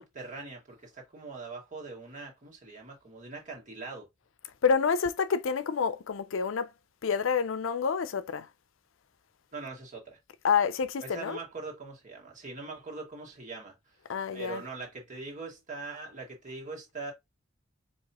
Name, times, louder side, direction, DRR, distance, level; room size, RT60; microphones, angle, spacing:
voice 1, 0.0-4.1 9.5-10.2 11.0-13.8 14.3-17.1, right 3 dB, 40° right, 1.9 m, -42 dB
voice 2, 4.6-6.7 7.0-8.5 10.4-11.4 14.1-14.6, left 6 dB, 80° left, 0.5 m, -28 dB
4.8 x 2.9 x 2.9 m
head